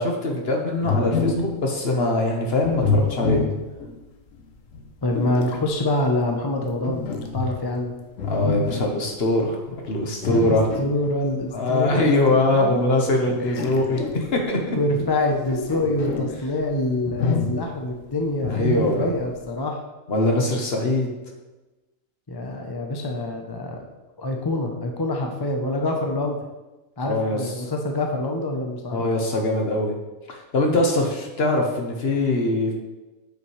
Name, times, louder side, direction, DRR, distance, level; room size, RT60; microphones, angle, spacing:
voice 1, 0.0-3.4 8.2-10.7 11.5-14.8 18.5-19.1 20.1-21.1 27.0-27.4 28.9-29.9 30.3-32.7, left 2 dB, 50° left, 1 dB, 1.3 m, -22 dB
sound 1, 0.8-1.6 2.6-4.0 4.7-5.7 6.8-7.8 8.2-9.0 10.2-11.0 11.8-12.2 13.3-14.4 15.2-16.4 17.0-17.8 18.4-19.3, left 3 dB, 70° left, 1.1 m, -26 dB
voice 2, 5.0-7.1 7.3-7.9 10.3-10.4 10.8-12.8 13.4-13.6 14.8-19.8 22.3-23.8 24.2-26.4 27.0-29.0, left 1 dB, 25° left, 2 dB, 0.5 m, -26 dB
8.6 x 5.6 x 3.2 m, 1.1 s
omnidirectional pair, 1.5 m